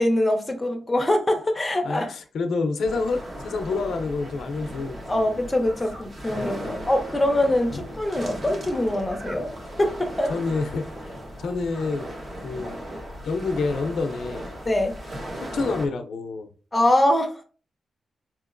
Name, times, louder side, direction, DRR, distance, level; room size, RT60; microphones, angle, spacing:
voice 1, 0.0-2.1 5.1-9.5 9.8-10.3 14.6-15.0 16.7-17.4, left 1 dB, 10° left, 0.6 m, -23 dB
voice 2, 1.8-5.2 6.4-6.9 7.7-7.8 10.3-10.8 11.4-12.1 12.4-12.8 13.2-14.5 15.5-16.5, left 3 dB, 80° left, 0.5 m, -28 dB
sound 1, 2.8-15.9, equal, 40° right, 1.0 m, -37 dB
5.0 x 2.9 x 2.5 m
wide cardioid pair, 165°, 0 cm